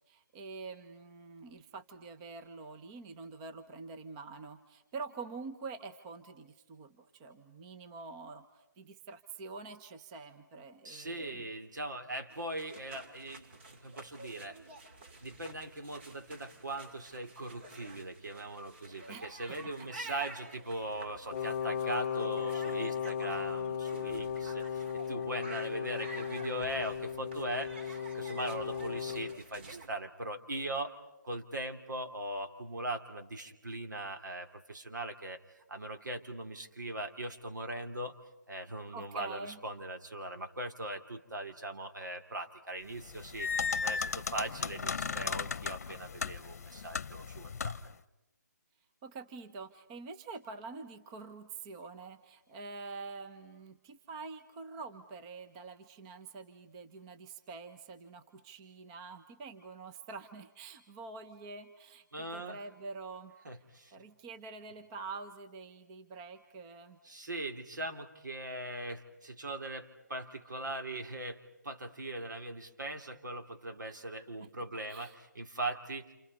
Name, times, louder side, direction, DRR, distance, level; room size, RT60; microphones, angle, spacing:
voice 1, 0.1-11.5 19.1-20.2 38.9-39.6 49.0-63.3 63.9-67.0 74.4-75.1, right 4 dB, 20° right, 8 dB, 1.0 m, -46 dB
voice 2, 10.8-14.6 15.2-30.9 31.2-35.4 35.7-38.1 38.5-43.5 43.8-47.8 62.1-62.6 63.4-63.9 67.0-76.1, right 1 dB, 80° right, 5 dB, 3.1 m, -40 dB
sound 1, 12.3-29.9, right 2 dB, 35° right, 2.3 m, -49 dB
Wind instrument woodwind instrument, 21.3-29.4, left 7 dB, 25° left, 0.9 m, -36 dB
sound 2, 43.0-47.9, left 5 dB, 55° left, 0.9 m, -36 dB
29.5 x 28.5 x 5.4 m, 0.94 s
hypercardioid pair, 165°, 10 cm